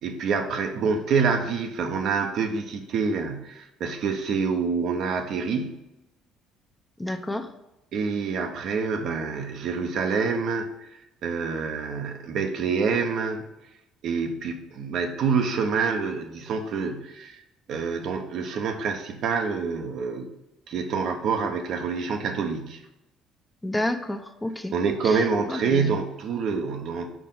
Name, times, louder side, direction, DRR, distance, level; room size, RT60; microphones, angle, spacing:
voice 1, 0.0-5.8 7.9-10.9 11.2-13.5 14.0-17.4 17.7-20.3 20.7-22.8 24.7-27.1, right 5 dB, 60° right, 5 dB, 0.8 m, -27 dB
voice 2, 7.0-7.5 23.6-24.7 25.0-26.0, left 1 dB, 15° left, 6 dB, 0.7 m, -30 dB
5.0 x 4.7 x 5.5 m, 0.96 s
hypercardioid pair, 60°, 0 cm